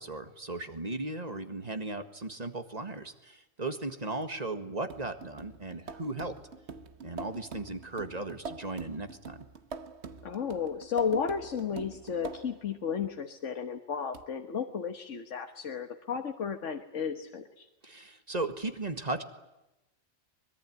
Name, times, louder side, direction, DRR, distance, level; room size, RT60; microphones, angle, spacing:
voice 1, 0.0-6.4 7.0-9.5 17.8-19.2, right 2 dB, 35° right, 8 dB, 1.8 m, -36 dB
sound 1, 4.9-12.7 14.1-14.2, right 4 dB, 65° right, 1.5 m, -45 dB
voice 2, 10.2-17.7, left 6 dB, 75° left, 6 dB, 1.6 m, -33 dB
24.0 x 21.5 x 9.6 m, 0.96 s
omnidirectional pair, 1.3 m